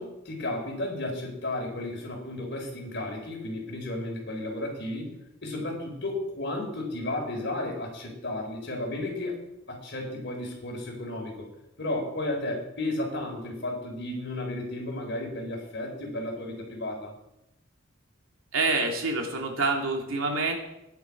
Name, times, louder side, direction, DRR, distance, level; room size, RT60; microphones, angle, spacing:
voice 1, 0.0-5.1 5.4-11.5 11.8-17.1, left 1 dB, 60° left, 1 dB, 4.1 m, -33 dB
voice 2, 18.5-20.5, right 3 dB, 85° right, 1 dB, 2.9 m, -27 dB
16.0 x 10.5 x 4.8 m, 0.88 s
head